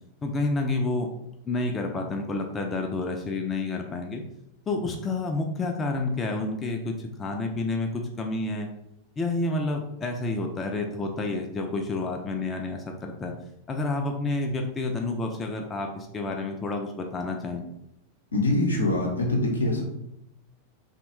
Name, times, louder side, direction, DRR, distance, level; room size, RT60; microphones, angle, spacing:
voice 1, 0.2-1.1 1.4-4.2 4.7-8.7 9.2-13.3 13.7-17.6, left 2 dB, 20° left, 2 dB, 0.3 m, -29 dB
voice 2, 18.3-19.8, left 2 dB, 75° left, 0 dB, 0.6 m, -24 dB
2.9 x 2.1 x 3.0 m, 0.79 s
figure-of-eight pair, 90°, 0 cm